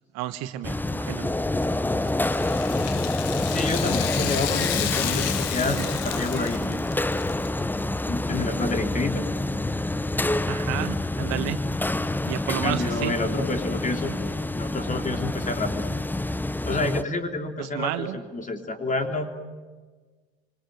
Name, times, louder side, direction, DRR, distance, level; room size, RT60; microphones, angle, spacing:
voice 1, 0.1-1.3 5.7-5.9 10.5-11.6 12.3-13.2 16.8-17.1 17.6-18.2, right 14 dB, 55° right, 11 dB, 1.2 m, -31 dB
sound 1, 0.6-17.0, left 2 dB, 5° left, 0.8 m, -27 dB
Rattle (instrument), 2.2-7.5 7.8-7.9 8.7-8.8, left 13 dB, 50° left, 1.4 m, -32 dB
voice 2, 3.5-6.6 8.1-9.3 12.5-14.2 14.5-15.9 16.6-19.4, left 2 dB, 25° left, 5 dB, 3.4 m, -29 dB
26.0 x 26.0 x 7.8 m, 1.4 s
figure-of-eight pair, 65°, 32 cm